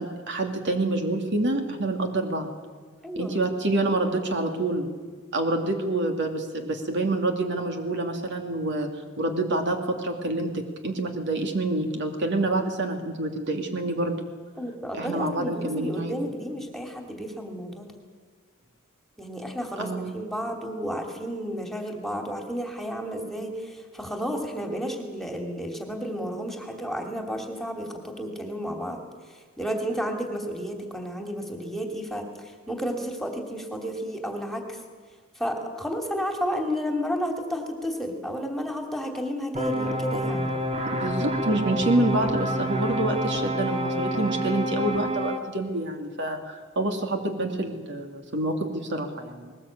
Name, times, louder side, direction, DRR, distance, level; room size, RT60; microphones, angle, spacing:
voice 1, 0.0-2.5 3.2-4.9 5.3-8.9 9.2-14.2 14.9-16.3 19.8-20.1 40.9-49.5, right 2 dB, 55° right, 4 dB, 2.5 m, -27 dB
voice 2, 3.0-3.4 14.6-17.9 19.2-29.0 29.6-32.3 32.7-34.8 35.4-40.5, equal, ahead, 3 dB, 2.8 m, -32 dB
sound 1, 39.5-45.4, equal, 35° right, 2.5 m, -28 dB
20.5 x 19.5 x 8.7 m, 1.5 s
head